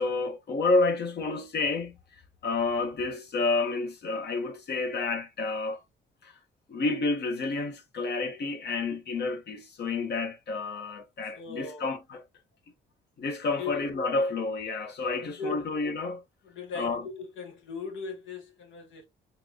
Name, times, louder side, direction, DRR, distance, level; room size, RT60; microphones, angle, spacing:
voice 1, 0.0-5.8 6.2-6.3 6.7-12.2 13.2-16.2 16.7-17.0, left 3 dB, 55° left, 1.2 m, -30 dB
voice 2, 11.3-11.9 13.6-13.8 15.1-15.7 16.4-19.0, left 4 dB, 75° left, 1.6 m, -38 dB
4.4 x 2.6 x 2.9 m
cardioid pair, 90°, 20 cm